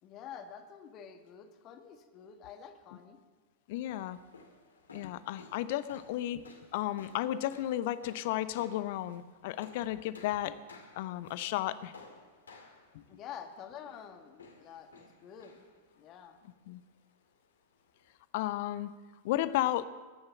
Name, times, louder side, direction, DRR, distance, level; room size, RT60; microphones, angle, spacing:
voice 1, 0.0-3.2 13.1-15.6 16.0-16.4, left 8 dB, 35° left, 6 dB, 1.8 m, -48 dB
voice 2, 3.7-4.2 4.9-6.5 6.7-10.6 11.0-11.9 12.9-13.0 16.7-16.8 18.3-18.9 19.2-19.8, left 14 dB, 50° left, 15 dB, 0.7 m, -33 dB
sound 1, 3.9-18.2, left 4 dB, 70° left, 2.4 m, -57 dB
21.5 x 9.6 x 5.9 m, 1.3 s
figure-of-eight pair, 90°, 0 cm